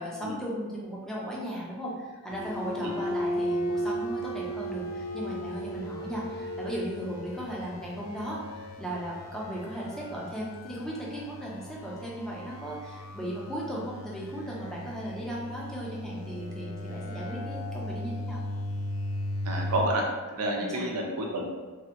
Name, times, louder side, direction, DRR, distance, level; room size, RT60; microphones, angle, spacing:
voice 1, 0.0-18.4 20.6-20.9, equal, ahead, -5 dB, 0.5 m, -36 dB
sound 1, 2.3-19.9, equal, 75° left, 0.4 m, -36 dB
voice 2, 19.4-20.0 20.3-21.5, right 1 dB, 85° right, 0 dB, 0.6 m, -29 dB
3.4 x 2.0 x 2.9 m, 1.3 s
head